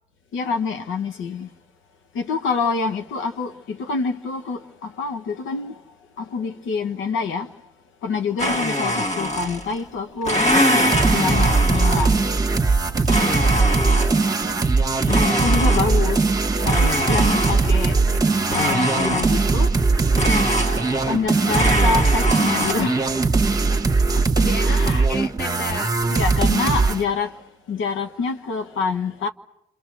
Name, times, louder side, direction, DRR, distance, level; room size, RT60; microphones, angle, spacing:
voice 1, 0.3-1.5 2.1-5.8 6.2-7.5 8.0-12.2 15.1-16.2 16.6-18.0 18.5-19.7 21.1-23.2 24.1-24.2 24.6-25.1 26.1-27.3 27.7-29.3, left 5 dB, 80° left, 1.3 m, -26 dB
Domestic sounds home sounds, 8.4-9.8 10.2-12.3 13.0-14.4 15.1-16.2 16.7-17.9 18.5-19.6 20.1-21.2 21.5-22.7, left 1 dB, 35° left, 1.9 m, -24 dB
sound 1, 10.5-27.0, right 3 dB, 20° right, 1.5 m, -20 dB
voice 2, 14.1-14.8 15.8-16.2 17.1-17.3 24.3-26.0, left 3 dB, 55° left, 1.3 m, -34 dB
30.0 x 26.0 x 6.3 m
cardioid pair, 90°, 20 cm